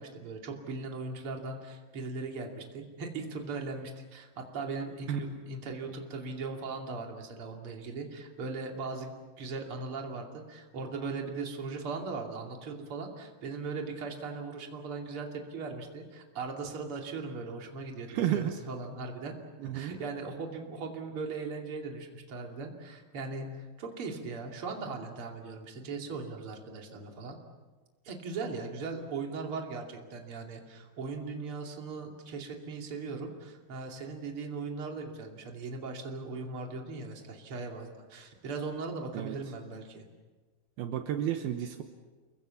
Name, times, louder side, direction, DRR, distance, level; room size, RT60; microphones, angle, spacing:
voice 1, 0.0-9.1 9.4-19.3 19.7-27.4 28.0-40.0, right 4 dB, 35° right, 1 dB, 2.4 m, -39 dB
voice 2, 18.1-18.5 19.6-19.9 39.1-39.4 40.8-41.8, right 11 dB, 85° right, 6 dB, 2.2 m, -31 dB
29.5 x 22.5 x 7.1 m, 1.3 s
omnidirectional pair, 5.9 m